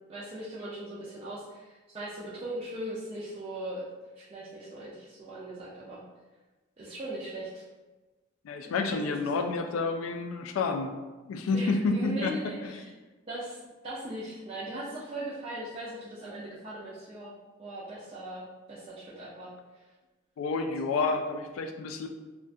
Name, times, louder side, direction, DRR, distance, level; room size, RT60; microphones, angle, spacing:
voice 1, 0.1-3.9 4.2-6.0 6.8-7.6 8.8-9.5 11.5-12.9 13.3-13.6 13.8-17.3 17.6-19.5, right 1 dB, 30° right, -8 dB, 0.4 m, -39 dB
voice 2, 8.4-10.9 11.3-12.3 12.6-12.7 20.4-22.1, left 3 dB, 90° left, 5 dB, 0.3 m, -29 dB
2.3 x 2.1 x 2.6 m, 1.2 s
head